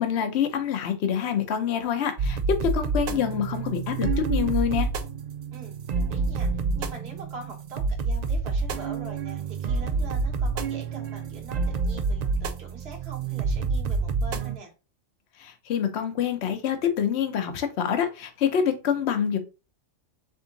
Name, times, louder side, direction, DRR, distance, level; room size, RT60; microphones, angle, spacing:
voice 1, 0.0-4.9 15.4-19.4, left 8 dB, 60° left, 1.0 m, -26 dB
sound 1, 2.2-14.6, right 4 dB, 75° right, 0.3 m, -28 dB
voice 2, 5.5-14.7, right 4 dB, 55° right, 1.6 m, -43 dB
3.6 x 3.5 x 3.9 m
omnidirectional pair, 1.3 m